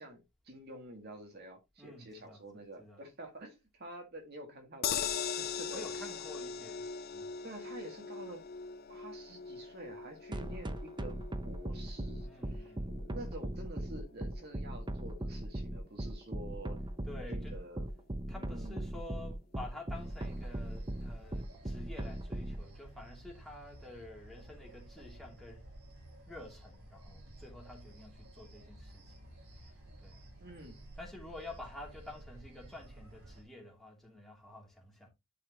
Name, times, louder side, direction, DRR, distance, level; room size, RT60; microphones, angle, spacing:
voice 1, 0.0-6.0 7.4-8.4 8.9-11.2 11.4-16.8 17.3-17.9 18.3-18.9 30.4-30.8, right 1 dB, 45° right, 1.9 m, -48 dB
voice 2, 1.8-2.4 2.8-3.0 5.7-6.8 7.1-7.3 10.4-10.6 12.2-12.9 17.0-17.6 18.3-25.7 26.3-29.4 29.6-29.7 30.0-30.3 31.0-35.1, left 2 dB, ahead, 2.6 m, -50 dB
sound 1, 4.8-17.1 17.4-17.5 17.8-17.9, left 7 dB, 45° left, 0.5 m, -42 dB
sound 2, 10.3-22.6, right 1 dB, 20° right, 0.7 m, -38 dB
sound 3, 19.9-33.4, right 1 dB, 80° right, 3.1 m, -53 dB
11.0 x 4.8 x 2.9 m
head